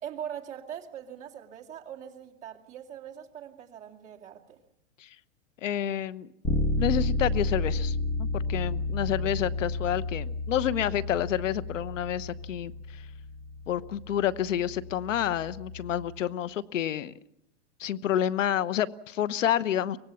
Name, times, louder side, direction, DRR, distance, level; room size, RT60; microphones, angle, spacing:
voice 1, 0.0-4.6, right 9 dB, 20° right, -1 dB, 2.3 m, -41 dB
voice 2, 5.6-6.3 6.8-13.0 13.7-17.1 17.8-20.0, left 10 dB, 85° left, 16 dB, 1.1 m, -29 dB
Bass guitar, 6.4-16.2, left 2 dB, 10° left, 1.4 m, -32 dB
24.0 x 19.0 x 7.1 m, 0.82 s
supercardioid pair, 160°, 37 cm